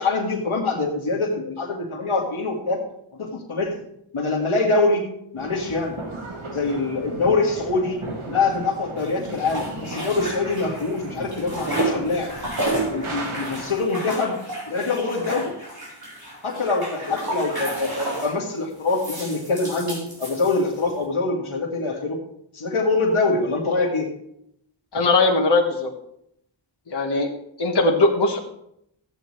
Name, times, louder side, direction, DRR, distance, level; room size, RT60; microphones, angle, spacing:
voice 1, 0.0-2.8 3.1-3.7 4.1-6.0 6.5-12.3 12.9-14.4 14.7-15.6 16.4-22.2 22.5-24.1, left 3 dB, 85° left, 0 dB, 1.8 m, -24 dB
sound 1, 5.4-13.7, right 2 dB, 90° right, 2.0 m, -36 dB
sound 2, 9.0-10.9 11.2-18.4 18.9-20.9, right 1 dB, 50° right, 4.5 m, -31 dB
voice 2, 24.9-25.9 26.9-27.3 27.6-28.4, left 2 dB, 55° left, -1 dB, 1.5 m, -19 dB
13.5 x 8.6 x 3.2 m, 0.75 s
cardioid pair, 40°, 48 cm